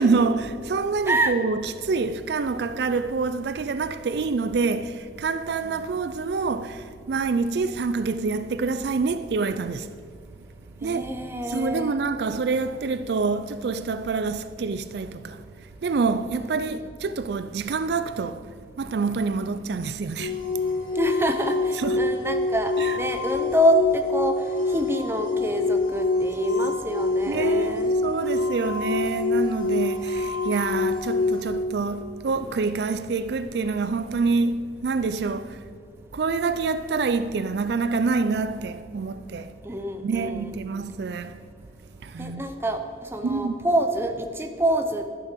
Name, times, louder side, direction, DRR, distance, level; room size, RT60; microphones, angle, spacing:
voice 1, 0.0-9.9 10.8-11.1 11.5-15.4 15.8-18.5 18.8-20.4 21.7-22.0 22.8-23.0 27.3-35.6 36.1-39.5 40.0-41.4 42.0-42.4 43.2-43.7, right 4 dB, 70° right, 0.4 m, -26 dB
voice 2, 10.8-11.9 16.3-16.4 16.7-16.8 20.9-24.4 24.7-27.9 39.6-40.5 42.2-45.1, equal, 15° right, 0.7 m, -26 dB
sound 1, 20.2-31.4, left 3 dB, 50° left, 2.3 m, -26 dB
11.5 x 7.0 x 6.6 m
head